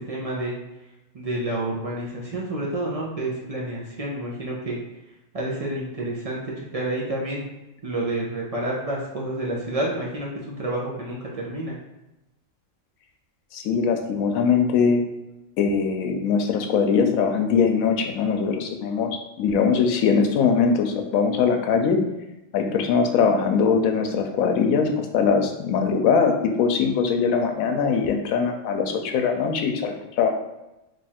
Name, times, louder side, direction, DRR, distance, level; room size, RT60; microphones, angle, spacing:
voice 1, 0.1-0.5 1.1-4.8 5.3-7.5 7.8-11.7, right 1 dB, 50° right, -4 dB, 0.4 m, -29 dB
voice 2, 13.5-15.0 15.6-22.0 22.5-26.3 26.6-30.3, left 6 dB, 90° left, 4 dB, 1.0 m, -21 dB
3.1 x 2.4 x 4.2 m, 0.96 s
omnidirectional pair, 1.4 m